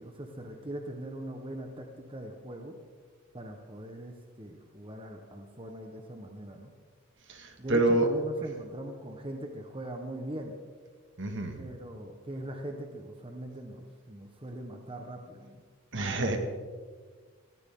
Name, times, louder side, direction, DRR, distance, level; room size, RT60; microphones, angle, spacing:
voice 1, 0.0-2.7 3.3-6.7 7.6-10.5 11.6-15.6, right 1 dB, 25° right, 3 dB, 1.3 m, -41 dB
voice 2, 7.3-8.1 11.2-11.6 15.9-16.4, right 2 dB, 55° right, 5 dB, 2.1 m, -27 dB
23.0 x 14.5 x 3.8 m, 1.6 s
head